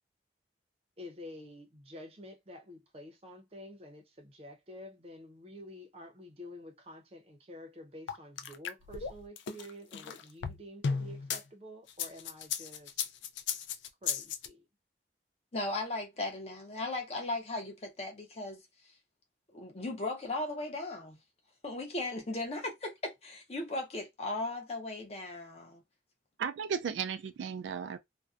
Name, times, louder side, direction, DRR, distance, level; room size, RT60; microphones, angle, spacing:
voice 1, 1.0-13.0 14.0-14.6, left 1 dB, 35° right, 0.6 m, -49 dB
sound 1, 8.1-11.4 11.9-14.5, left 6 dB, 90° left, 0.4 m, -35 dB
voice 2, 15.5-18.6 19.5-21.2 21.6-25.8, left 2 dB, 35° left, 0.6 m, -37 dB
voice 3, 26.4-28.0, right 7 dB, 85° right, 0.3 m, -35 dB
2.5 x 2.1 x 2.4 m
head